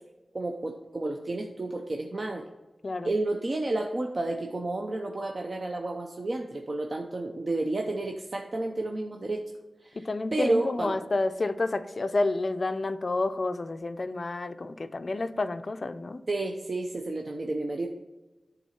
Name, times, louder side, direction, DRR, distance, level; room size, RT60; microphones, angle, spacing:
voice 1, 0.3-2.4 3.0-9.4 9.8-10.1 10.3-11.0 16.3-17.9, right 2 dB, 45° right, 2 dB, 0.6 m, -31 dB
voice 2, 10.0-16.2, left 2 dB, 50° left, 11 dB, 0.4 m, -30 dB
10.0 x 3.9 x 4.3 m, 1.1 s
wide cardioid pair, 95°, 0 cm